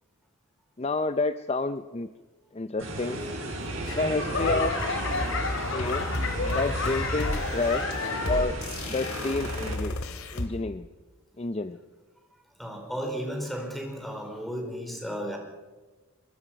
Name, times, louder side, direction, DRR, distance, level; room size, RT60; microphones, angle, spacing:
voice 1, 0.8-2.1 2.5-3.2 3.9-4.8 5.7-6.1 6.5-7.8 8.2-10.0 10.3-10.9 11.4-11.8, left 3 dB, 30° left, 11 dB, 0.6 m, -29 dB
sound 1, 2.8-9.7, right 1 dB, 60° right, 7.9 m, -34 dB
Laughter / Clapping / Crowd, 3.8-8.6 9.0-9.5 10.1-10.2, left 3 dB, 60° left, 3.8 m, -31 dB
sound 2, 5.4-10.5, left 1 dB, 75° left, 2.6 m, -34 dB
voice 2, 12.6-15.4, equal, ahead, 2 dB, 4.6 m, -34 dB
23.0 x 22.5 x 5.9 m, 1.2 s
head